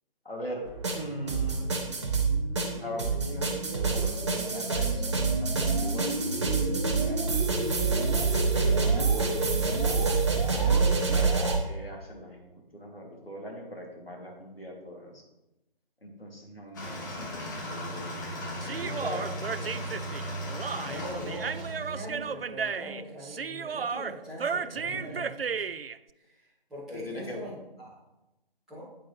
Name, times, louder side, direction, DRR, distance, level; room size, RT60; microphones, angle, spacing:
voice 1, 0.2-0.6 0.9-1.8 2.7-7.4 8.5-11.3 11.6-15.2 16.0-18.1 18.8-19.3 24.7-25.3 26.9-27.4, equal, 80° left, 0 dB, 2.7 m, -41 dB
sound 1, 0.7-11.6, right 4 dB, 30° right, 1.1 m, -26 dB
sound 2, 16.7-22.4, equal, 20° left, 1.3 m, -37 dB
voice 2, 16.9-17.4 19.3-19.7 20.8-25.6 26.1-27.9 28.7-28.8, equal, ahead, -15 dB, 2.9 m, -43 dB
Human voice, 18.6-26.0, right 6 dB, 80° right, 0.4 m, -34 dB
9.2 x 8.9 x 3.2 m, 0.98 s
figure-of-eight pair, 150°, 29 cm